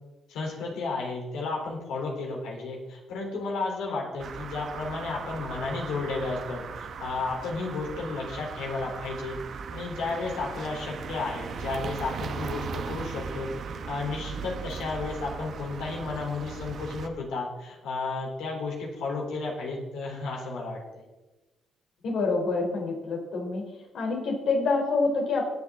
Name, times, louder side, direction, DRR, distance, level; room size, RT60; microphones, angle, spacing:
voice 1, 0.3-21.0, left 3 dB, 90° left, -1 dB, 3.9 m, -33 dB
sound 1, 4.2-17.1, right 6 dB, 60° right, 1.0 m, -38 dB
voice 2, 22.0-23.7 23.9-25.5, left 3 dB, 70° left, 0 dB, 3.9 m, -27 dB
18.0 x 7.9 x 3.9 m, 1.1 s
cardioid pair, 90°, 0 cm